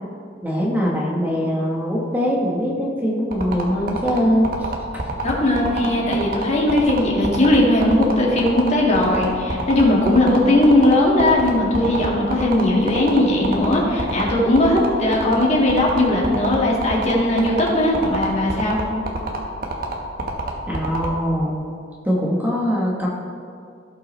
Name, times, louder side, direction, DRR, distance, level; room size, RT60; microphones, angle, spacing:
voice 1, 0.4-4.5 4.9-5.0 20.7-21.6 22.0-23.1, equal, 10° right, -3 dB, 1.1 m, -22 dB
sound 1, 3.3-21.1, right 3 dB, 50° right, 1.2 m, -26 dB
voice 2, 5.2-18.8, left 1 dB, 35° left, -3 dB, 1.8 m, -18 dB
16.5 x 5.6 x 3.2 m, 2.3 s
head